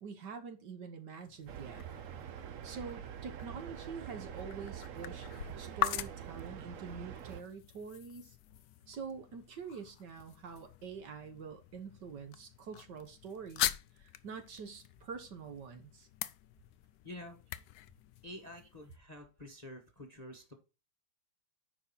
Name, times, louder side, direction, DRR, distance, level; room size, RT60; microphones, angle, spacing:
voice 1, 0.0-1.8 2.6-5.3 5.6-8.4 8.9-16.1, right 5 dB, 60° right, 1.6 m, -46 dB
sound 1, 1.1-19.0, left 12 dB, 85° left, 0.8 m, -43 dB
sound 2, 1.5-7.4, right 9 dB, 80° right, 0.7 m, -45 dB
voice 2, 17.0-17.4 18.2-20.5, left 1 dB, 25° left, 1.1 m, -48 dB
9.8 x 5.3 x 4.1 m
omnidirectional pair, 2.3 m